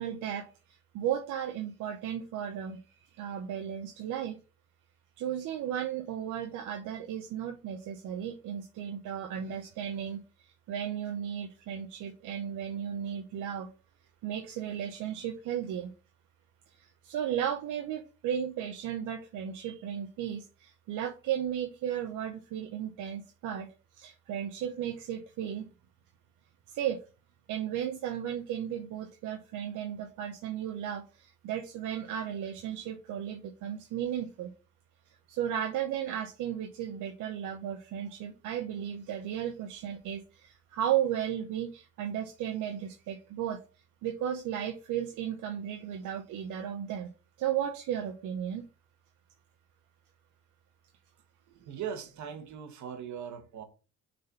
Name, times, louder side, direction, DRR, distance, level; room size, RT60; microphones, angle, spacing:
voice 1, 0.0-2.8 3.2-4.4 5.2-13.7 14.2-15.9 16.7-23.7 23.9-25.7 26.7-27.0 27.5-34.5 35.1-43.6 44.0-47.1 47.4-48.7, right 9 dB, 90° right, 0.9 m, -35 dB
voice 2, 51.5-53.6, right 8 dB, 70° right, 1.6 m, -40 dB
6.4 x 4.3 x 5.6 m
cardioid pair, 90°, 30 cm